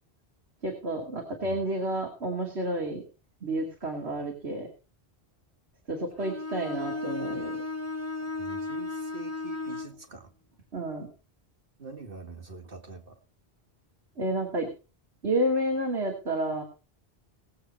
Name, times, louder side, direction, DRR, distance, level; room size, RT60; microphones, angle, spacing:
voice 1, 0.6-3.0 3.4-4.7 5.9-7.6 10.7-11.1 14.2-14.7 15.2-16.6, right 1 dB, 85° right, 1 dB, 2.9 m, -30 dB
Bowed string instrument, 6.2-10.0, left 3 dB, 15° left, 1.0 m, -35 dB
voice 2, 8.4-10.3 11.8-13.2, right 4 dB, 60° right, 5 dB, 2.2 m, -44 dB
20.0 x 8.1 x 4.4 m, 0.33 s
omnidirectional pair, 1.1 m